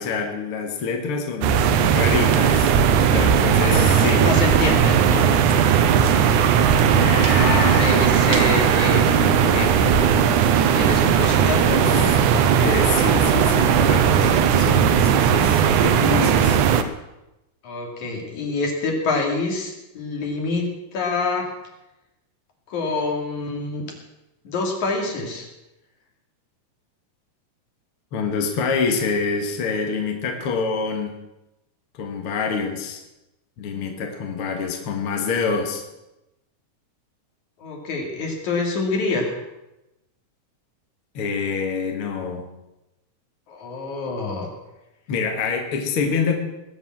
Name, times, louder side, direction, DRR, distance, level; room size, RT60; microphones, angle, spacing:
voice 1, 0.0-1.6 1.9-2.8 3.1-4.3 6.9-8.1 12.6-16.6 28.1-31.1 31.9-33.0 33.6-35.8 41.1-42.5 45.1-46.3, left 5 dB, 50° left, 3 dB, 2.1 m, -26 dB
sound 1, 1.4-16.8, right 8 dB, 80° right, 2.3 m, -17 dB
voice 2, 3.6-5.3 7.3-10.2 10.7-12.6 17.6-21.5 22.7-23.8 24.5-25.5 37.6-39.4 43.5-44.5, left 3 dB, 70° left, 1 dB, 3.8 m, -26 dB
20.0 x 7.4 x 7.4 m, 0.95 s
omnidirectional pair, 3.6 m